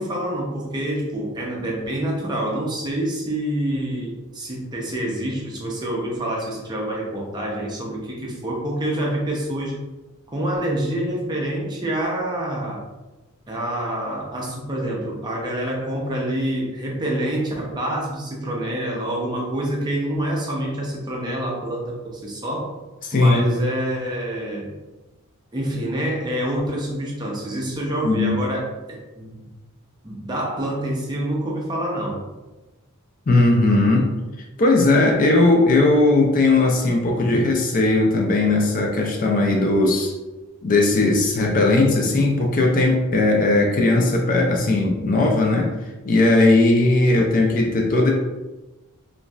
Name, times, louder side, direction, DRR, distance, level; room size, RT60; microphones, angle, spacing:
voice 1, 0.0-9.8 10.3-12.8 13.5-22.7 23.1-24.7 25.5-29.5 30.0-32.2, right 1 dB, 20° right, -3 dB, 0.5 m, -27 dB
voice 2, 23.1-23.5 28.0-28.4 33.3-34.1 34.6-40.1 40.6-45.7 46.0-48.1, left 2 dB, 40° left, 1 dB, 0.3 m, -18 dB
3.0 x 2.5 x 2.2 m, 1.1 s
head